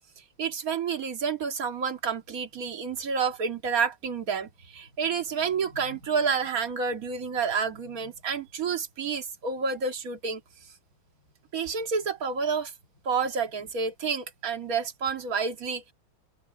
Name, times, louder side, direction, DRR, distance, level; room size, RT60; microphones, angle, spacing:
voice 1, 0.4-10.4 11.5-12.7 13.1-15.9, right 5 dB, 45° right, 2.3 m, -29 dB
open air
omnidirectional pair, 2.3 m